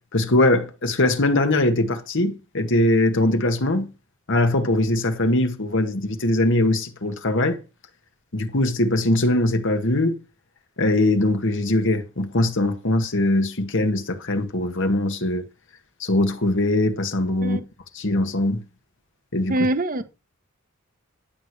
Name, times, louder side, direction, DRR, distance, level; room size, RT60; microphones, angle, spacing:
voice 1, 0.1-3.9 4.3-7.6 8.3-10.2 10.8-15.4 16.0-17.6 18.0-18.6 19.3-19.6, left 1 dB, 60° left, 1.8 m, -21 dB
voice 2, 19.5-20.0, right 1 dB, 40° right, 1.2 m, -23 dB
11.0 x 8.6 x 4.7 m
head